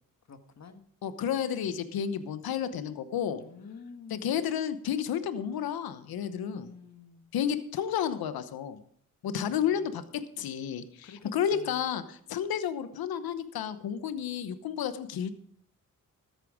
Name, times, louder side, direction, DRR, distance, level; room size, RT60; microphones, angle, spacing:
voice 1, 0.3-0.8 3.4-4.4 6.2-7.3 9.2-9.9 11.0-11.9, left 5 dB, 50° left, 7 dB, 1.6 m, -49 dB
voice 2, 1.0-3.4 4.1-6.7 7.3-8.8 9.2-15.3, left 8 dB, 90° left, 12 dB, 1.0 m, -31 dB
13.5 x 9.0 x 4.9 m, 0.62 s
cardioid pair, 70°, 35 cm